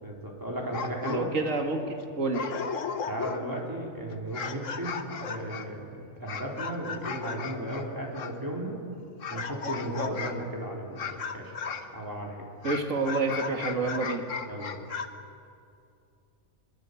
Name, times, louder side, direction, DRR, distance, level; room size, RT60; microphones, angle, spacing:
voice 1, 0.0-1.3 3.1-8.8 9.3-11.0 11.3-11.5 11.9-12.4 14.5-14.8, right 1 dB, 15° right, -2 dB, 4.2 m, -35 dB
sound 1, 0.6-1.5 2.0-2.1 2.3-3.6 4.1-8.4 9.2-10.5 11.0-11.9 12.6-15.1, left 6 dB, 65° left, 1.5 m, -36 dB
voice 2, 1.1-2.5 12.6-14.2, right 3 dB, 70° right, 3 dB, 2.3 m, -29 dB
23.0 x 22.0 x 8.4 m, 2.5 s
omnidirectional pair, 1.4 m